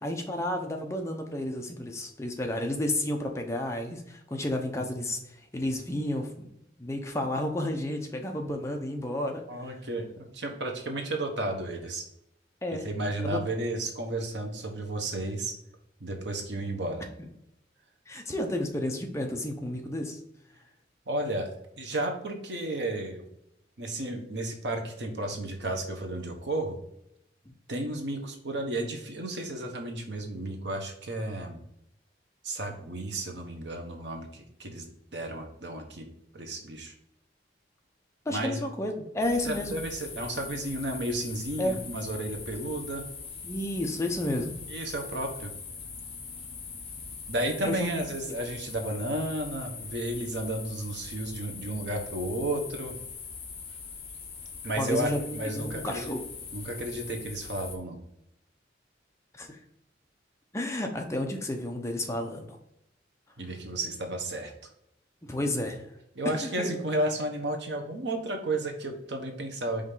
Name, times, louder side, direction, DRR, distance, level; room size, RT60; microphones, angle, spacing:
voice 1, 0.0-5.2 5.5-6.5 6.8-9.4 12.6-12.8 13.2-13.4 18.1-20.2 27.5-27.6 38.3-39.8 41.6-41.8 43.4-44.5 47.6-47.9 54.8-56.2 59.3-59.6 60.5-62.6 65.2-65.9 66.2-66.7, left 1 dB, 15° left, 3 dB, 0.7 m, -31 dB
voice 2, 9.5-12.1 12.8-15.6 16.0-17.0 21.1-23.2 23.8-26.8 27.7-31.6 32.4-36.1 36.3-36.9 38.3-38.6 39.4-43.0 44.7-45.5 47.3-53.0 54.6-56.1 56.5-58.0 63.4-64.7 66.1-69.9, right 1 dB, 70° right, 3 dB, 1.1 m, -33 dB
sound 1, 39.2-57.8, left 5 dB, 30° left, 1.1 m, -42 dB
5.2 x 3.5 x 5.5 m, 0.78 s
head